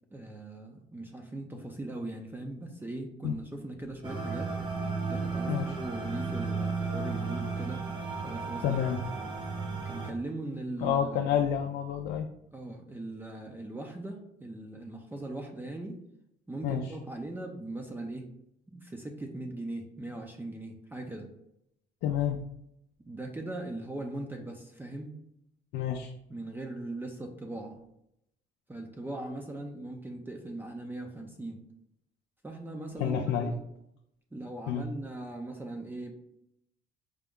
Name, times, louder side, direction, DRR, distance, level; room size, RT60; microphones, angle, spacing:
voice 1, 0.1-4.5 5.0-7.8 8.2-9.0 9.8-11.2 12.5-16.0 16.5-18.3 18.7-21.3 23.1-25.1 26.3-27.8 28.7-31.6 32.4-33.6 34.3-36.1, right 2 dB, 10° right, 2 dB, 0.5 m, -39 dB
sound 1, 4.0-10.1, right 4 dB, 30° right, 0.9 m, -34 dB
voice 2, 5.5-5.8 8.6-9.0 10.8-12.3 16.6-17.0 22.0-22.4 25.7-26.1 33.0-33.6 34.7-34.9, left 8 dB, 85° left, 3 dB, 0.4 m, -29 dB
5.0 x 2.2 x 3.6 m, 0.79 s
cardioid pair, 110°, 17 cm